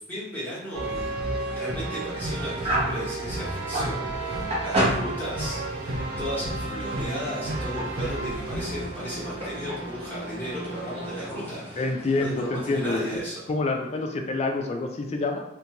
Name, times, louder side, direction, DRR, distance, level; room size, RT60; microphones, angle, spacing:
voice 1, 0.1-11.8 12.1-13.5, equal, 10° left, -9 dB, 0.9 m, -35 dB
sound 1, 0.7-11.3, right 2 dB, 55° right, 0.5 m, -32 dB
sound 2, 0.9-13.2, right 1 dB, 30° right, 0.8 m, -34 dB
voice 2, 11.8-13.2 13.5-15.4, left 3 dB, 30° left, 3 dB, 0.3 m, -27 dB
2.5 x 2.2 x 2.8 m, 0.82 s
head